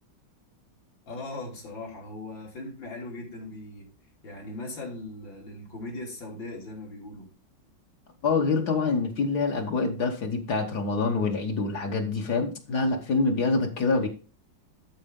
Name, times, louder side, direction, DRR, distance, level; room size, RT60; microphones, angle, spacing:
voice 1, 1.1-3.9 4.2-7.3, left 2 dB, 75° left, 3.8 m, -39 dB
voice 2, 8.2-14.1, left 4 dB, 55° left, 1.7 m, -26 dB
13.0 x 4.4 x 3.7 m
omnidirectional pair, 2.1 m